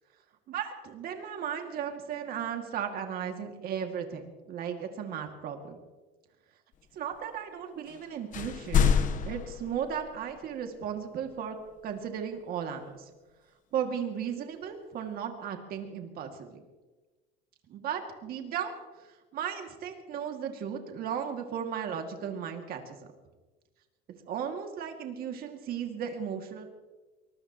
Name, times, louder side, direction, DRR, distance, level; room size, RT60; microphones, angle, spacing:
voice 1, 0.5-5.8 6.9-9.0 9.2-11.6 11.8-13.1 13.7-16.6 17.7-18.7 19.3-23.0 24.3-26.7, right 8 dB, 45° right, 4 dB, 2.2 m, -35 dB
sound 1, 7.9-8.0 8.3-10.4, left 7 dB, 40° left, 1.1 m, -27 dB
23.5 x 20.0 x 3.0 m, 1.2 s
cardioid pair, 150°, 21 cm